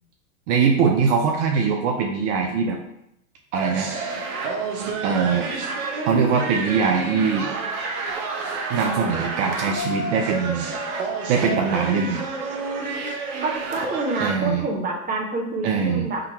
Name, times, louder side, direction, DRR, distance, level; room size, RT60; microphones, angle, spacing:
voice 1, 0.5-2.8 3.5-3.9 5.0-5.5 6.0-7.5 8.7-10.7 11.3-12.2 14.2-14.6 15.6-16.1, right 5 dB, 55° right, 2 dB, 0.6 m, -22 dB
sound 1, 3.5-14.4, right 3 dB, 70° right, 1.0 m, -29 dB
voice 2, 13.4-16.2, right 2 dB, 20° right, 0 dB, 1.0 m, -27 dB
3.7 x 2.9 x 4.4 m, 0.80 s
hypercardioid pair, 105°, 45 cm